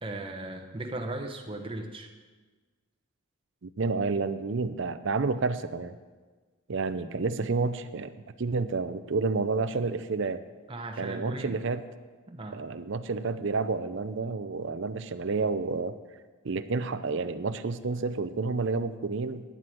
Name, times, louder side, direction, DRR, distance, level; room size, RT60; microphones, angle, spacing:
voice 1, 0.0-2.1 10.7-11.6 12.3-12.6, right 2 dB, 25° right, 3 dB, 0.9 m, -37 dB
voice 2, 3.6-6.0 6.7-10.4 11.0-11.8 12.5-15.9 16.4-19.4, right 4 dB, 55° right, 13 dB, 0.5 m, -30 dB
10.5 x 7.7 x 7.6 m, 1.4 s
head